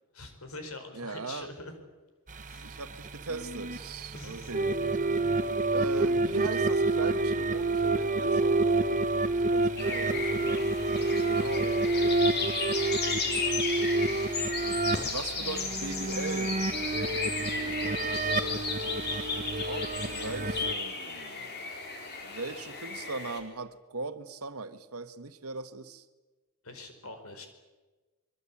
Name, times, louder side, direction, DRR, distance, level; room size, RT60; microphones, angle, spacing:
voice 1, 0.1-1.7 2.4-2.8 4.1-4.5 9.8-10.3 17.4-18.5 26.6-27.5, left 2 dB, 75° left, 5.0 m, -45 dB
voice 2, 0.9-1.5 2.5-4.8 5.7-12.2 15.0-16.7 19.7-21.6 22.2-26.0, right 3 dB, 80° right, 1.6 m, -39 dB
sound 1, 2.3-20.7, right 2 dB, 35° right, 1.2 m, -29 dB
sound 2, 9.8-23.4, left 4 dB, 45° left, 4.4 m, -35 dB
25.5 x 23.0 x 8.7 m
head